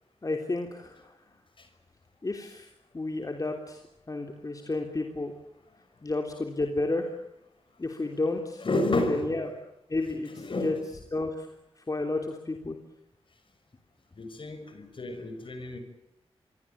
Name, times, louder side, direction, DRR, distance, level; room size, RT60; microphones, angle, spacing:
voice 1, 0.2-1.0 2.2-2.7 2.9-3.8 4.1-5.3 6.0-7.1 7.8-8.6 9.1-9.5 9.9-10.7 11.1-11.5 11.9-12.8, left 2 dB, 35° left, 4 dB, 3.3 m, -31 dB
voice 2, 8.6-9.3 10.3-10.8 14.2-15.8, left 2 dB, 55° left, 8 dB, 6.4 m, -30 dB
27.5 x 23.0 x 8.7 m, 0.83 s
cardioid pair, 75°, 10 cm